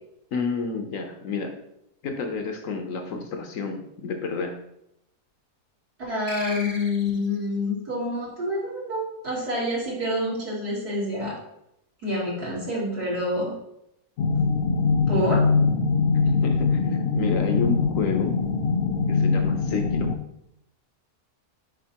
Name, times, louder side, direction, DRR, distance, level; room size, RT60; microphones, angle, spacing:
voice 1, 0.3-1.5 2.0-4.6 16.2-18.4 19.1-20.1, left 4 dB, 65° left, 5 dB, 1.0 m, -30 dB
voice 2, 6.0-11.4 12.0-13.5 15.1-15.4, left 1 dB, 80° right, -6 dB, 2.8 m, -27 dB
sound 1, 6.3-7.5, equal, 25° left, 0.7 m, -38 dB
sound 2, 14.2-20.2, left 4 dB, 80° left, 0.5 m, -22 dB
6.4 x 5.3 x 2.8 m, 0.80 s
omnidirectional pair, 1.6 m